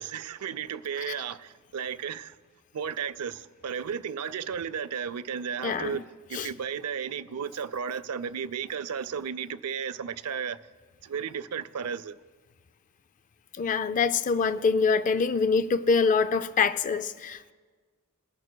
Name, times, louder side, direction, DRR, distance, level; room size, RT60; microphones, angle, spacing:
voice 1, 0.0-2.3 2.7-6.0 6.3-10.6 11.0-12.1, right 7 dB, 85° right, 0.5 m, -34 dB
voice 2, 5.6-6.0 6.3-6.5 13.6-17.5, left 5 dB, 35° left, 0.3 m, -25 dB
21.5 x 11.0 x 2.2 m
head